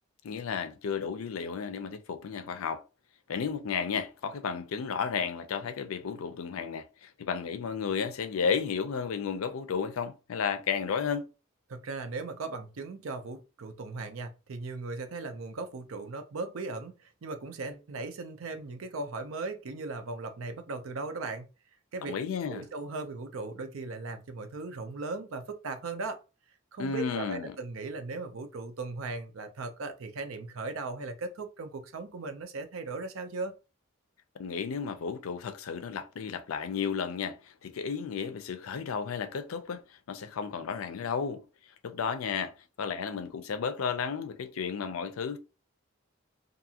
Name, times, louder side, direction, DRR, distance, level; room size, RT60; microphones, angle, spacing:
voice 1, 0.2-2.8 3.3-11.3 22.0-22.6 26.8-27.6 34.4-41.4 41.8-45.4, left 6 dB, 85° left, 0.4 m, -33 dB
voice 2, 11.7-21.4 21.9-22.2 22.5-26.2 26.7-33.5, right 3 dB, 80° right, 0.5 m, -38 dB
2.6 x 2.4 x 2.7 m
head